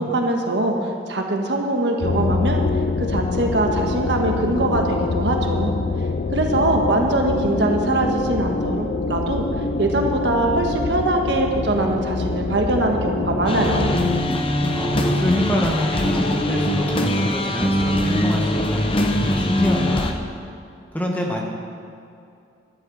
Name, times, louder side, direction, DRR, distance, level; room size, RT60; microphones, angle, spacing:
voice 1, 0.0-2.6 3.0-5.7 6.3-9.5 9.8-13.9, right 2 dB, 70° right, 2 dB, 1.4 m, -22 dB
sound 1, 2.0-14.2, left 3 dB, 50° left, 0.4 m, -25 dB
sound 2, 13.5-20.1, left 1 dB, 30° left, 0.8 m, -22 dB
voice 2, 14.7-20.1 20.9-21.4, left 1 dB, 10° left, -1 dB, 1.4 m, -26 dB
12.0 x 8.2 x 7.2 m, 2.5 s
head